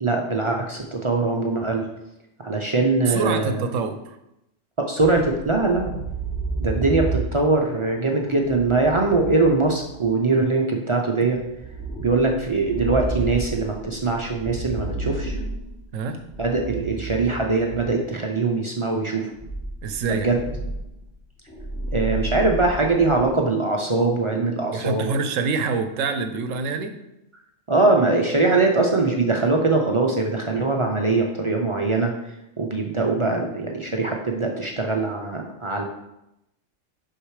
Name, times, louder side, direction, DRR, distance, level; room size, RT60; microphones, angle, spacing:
voice 1, 0.0-1.9 2.4-3.6 4.8-5.9 6.6-11.4 12.0-15.4 16.4-19.3 20.1-20.4 21.9-25.1 27.7-32.1 32.6-35.8, right 3 dB, 40° right, 0 dB, 0.4 m, -22 dB
voice 2, 3.1-4.2 15.9-16.2 19.8-20.3 24.7-27.0 33.3-33.4, right 4 dB, 80° right, 8 dB, 1.0 m, -26 dB
sound 1, 5.0-10.2 11.3-18.1 19.3-23.3, right 2 dB, 5° right, 1.1 m, -32 dB
6.6 x 5.6 x 3.2 m, 0.87 s
omnidirectional pair, 1.3 m